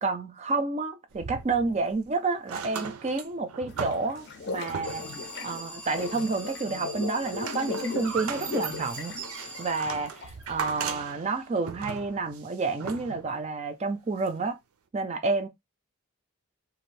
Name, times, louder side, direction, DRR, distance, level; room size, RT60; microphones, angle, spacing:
voice 1, 0.0-5.0 5.4-9.1 9.6-14.6 14.9-15.5, right 3 dB, 30° right, 0.4 m, -29 dB
sound 1, 1.1-2.1 2.4-5.3 5.8-6.6 7.0-13.4 14.3-14.4, right 6 dB, 85° right, 0.5 m, -38 dB
sound 2, 3.7-10.4, left 5 dB, 50° left, 0.5 m, -38 dB
Alarm, 4.8-10.4, right 1 dB, 5° left, 0.6 m, -43 dB
2.6 x 2.4 x 3.2 m
head